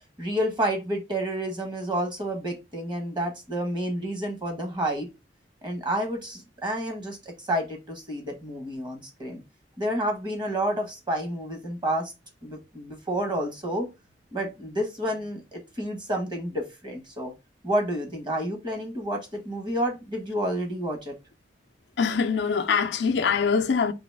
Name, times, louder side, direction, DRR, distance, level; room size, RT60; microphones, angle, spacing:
voice 1, 0.2-5.1 5.6-9.4 9.8-12.1 12.4-13.9 14.3-17.3 17.6-21.1, right 1 dB, 25° right, 1.2 m, -30 dB
voice 2, 22.0-23.9, left 5 dB, 75° left, 0.5 m, -23 dB
3.9 x 3.0 x 3.4 m
head